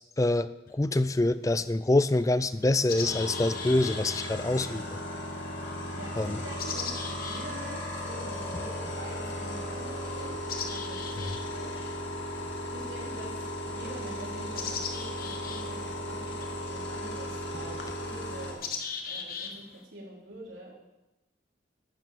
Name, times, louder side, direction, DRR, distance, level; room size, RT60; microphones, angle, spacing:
voice 1, 0.2-5.0 6.2-6.4, left 2 dB, 15° left, 15 dB, 0.4 m, -26 dB
sound 1, 0.7-0.8 1.6-1.7 2.1-19.8, left 6 dB, 50° left, 1.3 m, -41 dB
sound 2, 2.8-18.5, equal, 80° left, 2.6 m, -36 dB
voice 2, 5.9-11.7 12.7-17.8 18.0-18.7 19.1-20.7, right 1 dB, 80° right, -4 dB, 4.4 m, -45 dB
11.5 x 7.5 x 7.8 m, 0.99 s
head